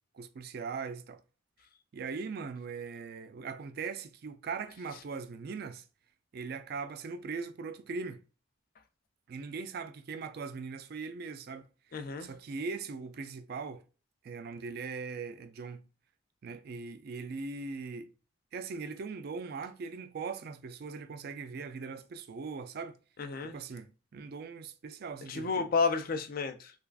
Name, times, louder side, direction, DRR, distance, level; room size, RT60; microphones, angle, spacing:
voice 1, 0.1-1.2 1.9-5.8 6.3-8.2 9.3-11.7 12.2-13.8 14.2-15.8 16.4-18.1 18.5-23.0 23.4-25.7, right 4 dB, 50° right, 0.3 m, -40 dB
voice 2, 11.9-12.3 23.2-23.5 25.3-26.7, left 4 dB, 45° left, 0.4 m, -31 dB
3.3 x 2.4 x 2.3 m
head